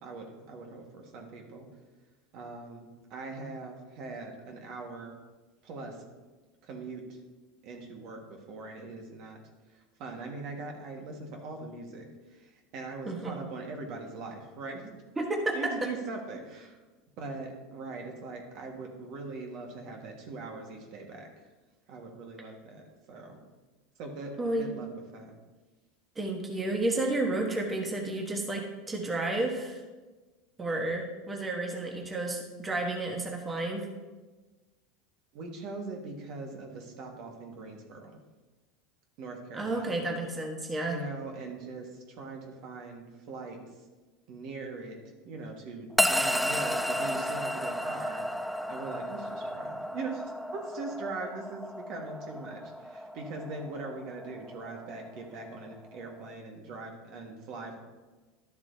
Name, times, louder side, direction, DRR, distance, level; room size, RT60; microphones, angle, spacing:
voice 1, 0.0-1.7 2.3-2.9 3.1-5.1 5.6-6.1 6.6-7.2 7.6-9.4 9.7-12.1 12.3-14.9 15.5-16.8 17.2-21.3 21.9-23.4 24.0-24.9 25.1-25.3 35.3-38.2 39.2-39.9 40.9-43.6 44.3-45.0 45.2-48.2 48.7-50.2 50.5-57.8, right 3 dB, 60° right, 2 dB, 1.6 m, -41 dB
voice 2, 13.1-13.4 15.2-15.9 24.4-24.7 26.2-29.8 30.6-33.9 39.5-41.0, right 2 dB, 15° right, 1 dB, 1.2 m, -31 dB
sound 1, 46.0-56.3, equal, ahead, 0.4 m, -33 dB
11.5 x 7.2 x 2.8 m, 1.2 s
supercardioid pair, 115°, 0 cm